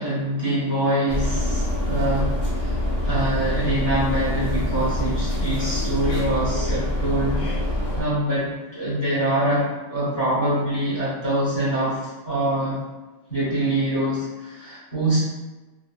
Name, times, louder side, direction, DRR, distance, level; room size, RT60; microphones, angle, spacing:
voice 1, 0.0-2.8 3.0-7.5 8.0-12.8 13.3-15.2, right 1 dB, 20° left, -9 dB, 0.9 m, -24 dB
sound 1, 1.1-8.0, left 1 dB, 70° left, 1.0 m, -25 dB
3.5 x 2.3 x 2.3 m, 1.1 s
omnidirectional pair, 1.3 m